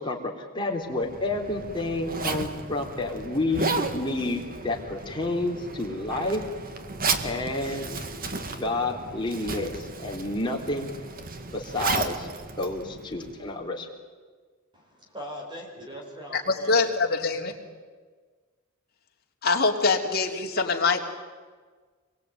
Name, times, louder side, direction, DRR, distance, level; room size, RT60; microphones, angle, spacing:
voice 1, 0.0-6.4 7.2-7.9 8.5-10.9 11.5-12.3 12.6-13.9, left 2 dB, 20° left, 0 dB, 3.6 m, -30 dB
Zipper (clothing), 0.9-13.5, right 3 dB, 45° right, 1.9 m, -34 dB
voice 2, 14.7-16.8, equal, 20° right, 0 dB, 5.5 m, -40 dB
voice 3, 16.3-17.5 19.4-21.0, left 4 dB, 50° left, 1 dB, 3.1 m, -24 dB
26.0 x 22.5 x 9.3 m, 1.5 s
head